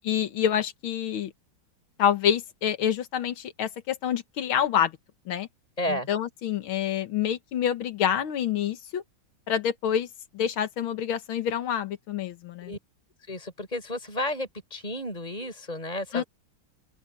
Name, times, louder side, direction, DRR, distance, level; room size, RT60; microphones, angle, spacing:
voice 1, 0.0-1.3 2.0-5.0 5.3-5.5 5.9-9.0 9.5-10.1 10.3-12.7 16.1-16.2, left 9 dB, 80° left, 2.0 m, -27 dB
voice 2, 5.8-6.1 12.6-12.8 13.3-16.2, left 1 dB, 20° left, 5.3 m, -32 dB
open air
omnidirectional pair, 2.3 m